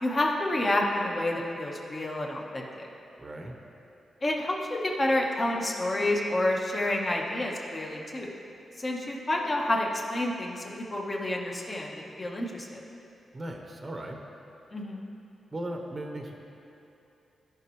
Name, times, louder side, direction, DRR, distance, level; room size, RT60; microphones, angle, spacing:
voice 1, 0.0-2.9 4.2-8.3 8.8-12.8 14.7-15.1, left 1 dB, 30° left, -1 dB, 1.2 m, -29 dB
voice 2, 3.2-3.5 13.3-14.2 15.5-16.3, right 1 dB, 30° right, 1 dB, 1.0 m, -37 dB
16.0 x 5.4 x 3.2 m, 2.8 s
cardioid pair, 105°, 0 cm